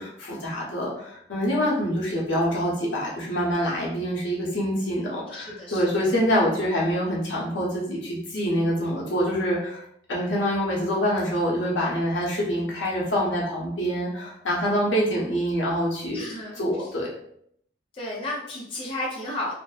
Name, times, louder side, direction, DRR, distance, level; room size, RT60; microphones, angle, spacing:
voice 1, 0.0-9.8 10.1-16.2 16.6-17.1, equal, 75° left, -5 dB, 0.8 m, -25 dB
voice 2, 5.3-6.1 16.1-16.9 17.9-19.5, left 1 dB, 30° left, -6 dB, 0.5 m, -34 dB
2.6 x 2.0 x 2.3 m, 0.70 s
head